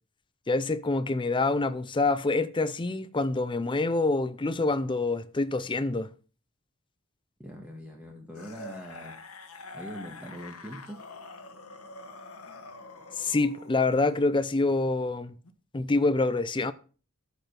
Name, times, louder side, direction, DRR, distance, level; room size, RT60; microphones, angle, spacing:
voice 1, 0.5-6.1 13.2-15.3 15.7-16.7, left 3 dB, 25° left, 0.5 m, -26 dB
voice 2, 7.4-9.2 9.7-11.0, equal, 5° right, 1.7 m, -42 dB
sound 1, 8.3-14.3 15.4-15.5, left 2 dB, 85° left, 1.6 m, -46 dB
13.5 x 5.2 x 6.0 m
head